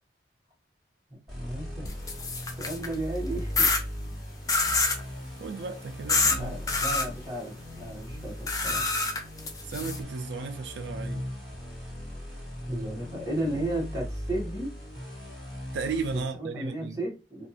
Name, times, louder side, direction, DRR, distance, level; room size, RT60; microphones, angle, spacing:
voice 1, 1.1-1.9 2.6-3.7 6.2-8.9 12.7-14.7 16.1-17.5, right 1 dB, 20° right, 1.1 m, -34 dB
sound 1, 1.3-16.2, equal, ahead, 1.4 m, -39 dB
sound 2, 1.9-2.9 3.6-3.8 4.5-5.0 6.1-6.4 6.7-7.1 8.5-10.0, left 3 dB, 20° left, 0.4 m, -26 dB
voice 2, 5.4-6.5 6.9-7.0 9.6-11.2 15.7-17.0, right 5 dB, 75° right, 0.3 m, -34 dB
2.5 x 2.3 x 2.7 m
head